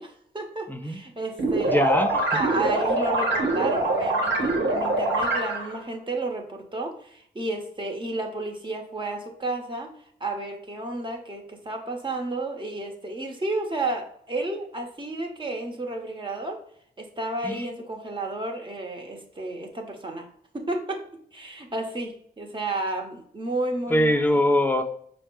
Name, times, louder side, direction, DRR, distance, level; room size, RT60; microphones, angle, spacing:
voice 1, 0.0-1.9 2.3-9.9 10.2-16.6 17.0-20.3 20.5-24.4, right 2 dB, 25° right, 2 dB, 1.1 m, -32 dB
voice 2, 0.7-1.0 1.7-2.3 17.4-17.7 23.9-24.8, left 1 dB, 10° left, 6 dB, 0.6 m, -22 dB
sound 1, 1.4-5.8, right 2 dB, 85° right, 1.1 m, -24 dB
5.4 x 2.2 x 4.6 m, 0.64 s
cardioid pair, 55°, 18 cm